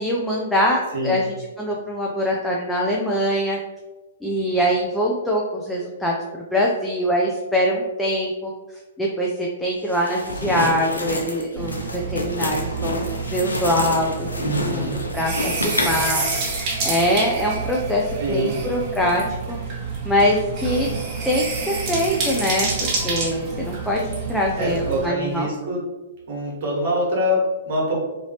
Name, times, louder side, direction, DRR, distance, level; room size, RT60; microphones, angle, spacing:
voice 1, 0.0-3.6 4.2-6.2 6.5-8.5 9.0-14.3 14.6-14.9 15.1-16.2 16.8-19.6 20.0-20.9 21.2-22.7 23.0-25.5, equal, 5° left, -3 dB, 0.4 m, -23 dB
sound 1, 9.9-16.2, left 2 dB, 80° left, 0.4 m, -28 dB
sound 2, 11.6-25.1, right 4 dB, 30° right, 0.9 m, -28 dB
voice 2, 14.4-15.0 18.2-18.6 24.6-25.8 26.3-28.0, equal, 50° right, -4 dB, 1.2 m, -24 dB
2.8 x 2.7 x 2.8 m, 1.2 s
figure-of-eight pair, 115°, 0 cm